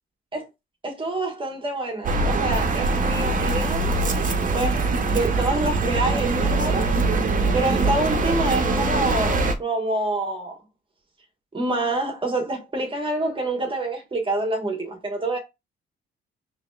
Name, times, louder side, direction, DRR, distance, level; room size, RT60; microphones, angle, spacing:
voice 1, 0.8-3.9 4.5-7.0 7.5-10.5 11.5-15.4, right 2 dB, 25° right, 1.4 m, -27 dB
sound 1, 2.0-9.5, right 3 dB, 40° right, 0.8 m, -22 dB
5.0 x 3.1 x 2.3 m
cardioid pair, 90°, 20 cm